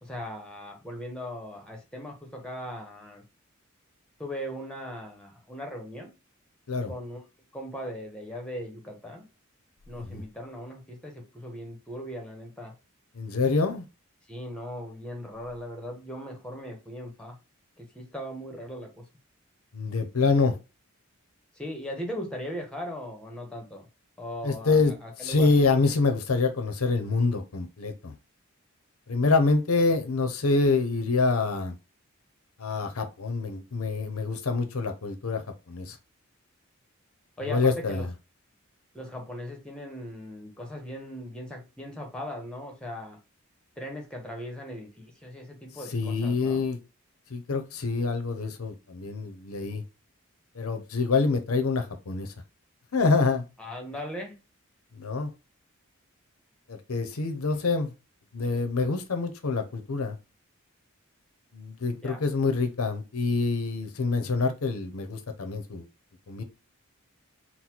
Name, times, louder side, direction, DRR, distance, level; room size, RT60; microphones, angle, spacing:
voice 1, 0.0-3.2 4.2-6.1 6.9-7.2 7.5-9.3 9.9-12.7 14.3-17.4 17.8-19.0 21.5-23.9 24.2-25.5 37.4-38.1 38.9-43.2 43.8-46.6 53.6-54.4 62.0-62.2, equal, 5° left, 0.9 m, -38 dB
voice 2, 13.2-13.8 19.7-20.6 24.4-24.9 25.2-28.1 29.1-31.7 32.6-35.4 35.7-36.0 37.4-38.1 45.9-46.8 47.3-49.8 50.6-52.3 52.9-53.4 54.9-55.3 56.7-57.9 58.3-60.2 61.5-65.9 66.3-66.4, left 3 dB, 85° left, 0.7 m, -26 dB
4.0 x 2.2 x 4.4 m
head